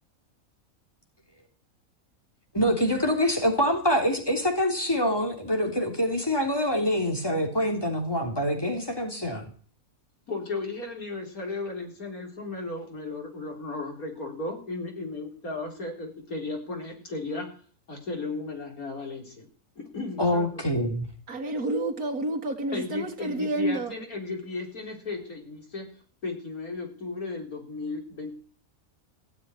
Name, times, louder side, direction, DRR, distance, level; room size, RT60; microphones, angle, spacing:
voice 1, 2.5-9.5 20.2-21.1, equal, 15° left, 3.3 m, -25 dB
voice 2, 10.3-17.5 17.9-19.5 19.8-20.5 22.7-25.9 26.2-28.3, left 3 dB, 80° left, 4.3 m, -35 dB
voice 3, 21.3-23.9, right 1 dB, 80° right, 2.5 m, -29 dB
16.0 x 7.9 x 9.9 m
omnidirectional pair, 1.5 m